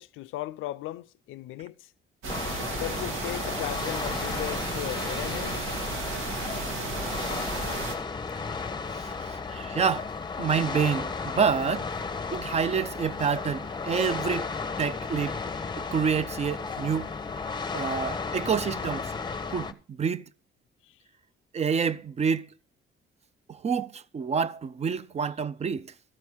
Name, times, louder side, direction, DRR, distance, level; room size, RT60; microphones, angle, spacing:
voice 1, 0.0-1.9 2.8-5.6 20.9-21.0, left 16 dB, 85° left, 0.4 m, -37 dB
sound 1, 2.2-7.9, right 3 dB, 80° right, 1.8 m, -34 dB
sound 2, 2.3-19.7, left 4 dB, 20° left, 0.8 m, -34 dB
voice 2, 8.9-10.1 10.4-11.9 12.3-14.5 14.8-15.4 15.8-17.1 17.7-19.1 19.5-20.3 21.5-22.5 23.5-25.9, right 6 dB, 35° right, 0.5 m, -28 dB
13.0 x 4.5 x 7.2 m
cardioid pair, 90°, 20 cm